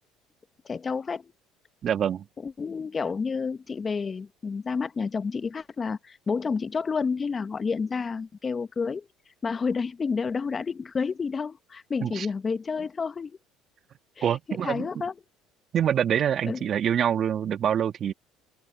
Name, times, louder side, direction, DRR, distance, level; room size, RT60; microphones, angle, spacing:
voice 1, 0.6-1.3 2.4-9.1 9.4-13.4 14.2-15.1 16.4-16.6, left 5 dB, 30° left, 1.3 m, -30 dB
voice 2, 1.8-2.2 12.0-12.3 14.2-14.9 15.7-18.1, right 9 dB, 50° right, 1.7 m, -25 dB
open air
supercardioid pair, 75°, 0 cm